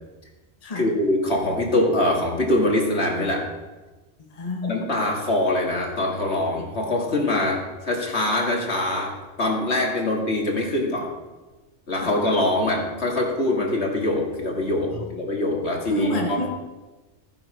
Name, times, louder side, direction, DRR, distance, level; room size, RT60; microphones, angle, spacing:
voice 1, 0.7-3.5 4.6-11.1 11.9-16.4, left 1 dB, 65° left, 0 dB, 2.4 m, -23 dB
voice 2, 4.3-4.7 12.0-12.1 14.9-15.1 15.9-16.5, equal, 30° left, 1 dB, 1.3 m, -27 dB
14.5 x 10.0 x 5.0 m, 1.2 s
omnidirectional pair, 1.2 m